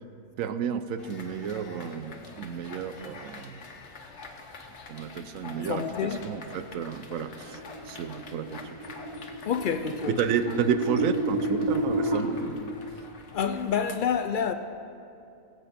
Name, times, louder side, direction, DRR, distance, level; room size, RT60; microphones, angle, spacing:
voice 1, 0.4-3.7 4.9-8.8 10.1-12.8, right 7 dB, 75° right, 1.0 m, -31 dB
sound 1, 1.0-13.8, left 4 dB, 60° left, 1.3 m, -45 dB
voice 2, 5.6-6.2 9.5-10.2 13.3-14.5, left 7 dB, 85° left, 0.4 m, -28 dB
sound 2, 7.5-12.2, right 1 dB, 30° right, 1.3 m, -31 dB
22.0 x 7.9 x 4.3 m
omnidirectional pair, 1.4 m